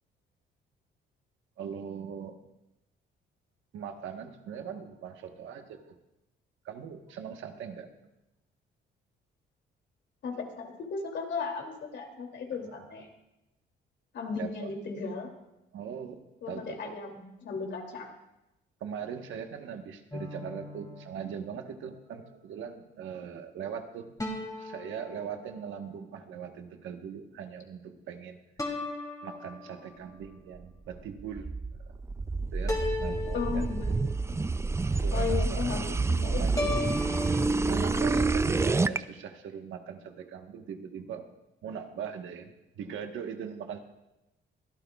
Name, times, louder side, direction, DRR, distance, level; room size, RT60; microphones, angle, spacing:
voice 1, 1.6-2.5 3.7-6.0 6.6-7.9 12.5-12.9 14.4-14.7 15.7-17.0 18.8-24.1 24.6-28.4 29.2-31.5 32.5-33.7 34.9-36.0 36.3-37.0 37.7-41.3 41.6-43.8, right 7 dB, 80° right, 5 dB, 1.3 m, -40 dB
voice 2, 10.2-13.1 14.1-15.3 16.4-18.1 33.3-34.4 35.1-36.6 37.4-38.1 38.9-39.0, left 5 dB, 65° left, 2 dB, 2.7 m, -36 dB
sound 1, 20.1-21.8 24.2-25.9 28.6-30.1 32.7-34.3 36.6-37.4, left 3 dB, 15° left, 2.9 m, -37 dB
sound 2, 30.9-39.0, right 3 dB, 15° right, 0.3 m, -28 dB
23.5 x 12.0 x 2.4 m, 0.93 s
cardioid pair, 90°, 20 cm